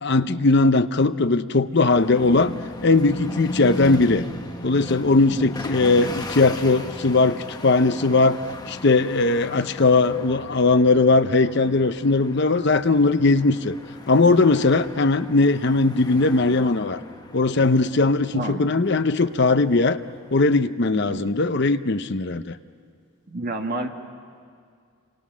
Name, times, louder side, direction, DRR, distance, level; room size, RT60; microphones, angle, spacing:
voice 1, 0.0-2.5 2.8-4.2 4.6-8.4 8.7-13.8 14.1-17.0 17.3-20.0 20.3-22.5, left 3 dB, 50° left, 11 dB, 0.7 m, -19 dB
sound 1, 1.9-20.5, left 1 dB, 20° left, 1.4 m, -37 dB
voice 2, 18.3-18.6 20.9-21.3 23.3-23.9, right 2 dB, 45° right, 3 dB, 1.7 m, -29 dB
29.5 x 26.5 x 6.3 m, 2.2 s
head